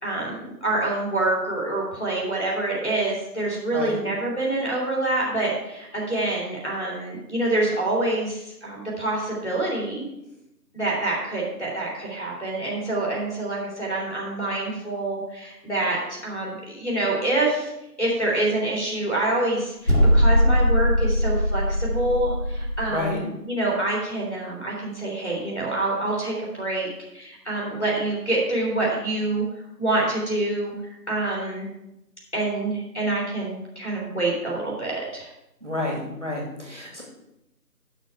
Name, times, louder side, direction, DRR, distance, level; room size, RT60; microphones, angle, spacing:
voice 1, 0.0-10.0 10.7-17.7 18.0-29.4 29.8-30.7 31.1-31.7 32.3-35.3, right 2 dB, 40° left, -5 dB, 3.2 m, -26 dB
sound 1, 19.9-22.9, equal, 55° left, 2.4 m, -20 dB
voice 2, 22.9-23.2 35.6-37.0, left 1 dB, 45° right, -2 dB, 2.5 m, -30 dB
9.8 x 6.6 x 4.7 m, 0.87 s
figure-of-eight pair, 180°, 50 cm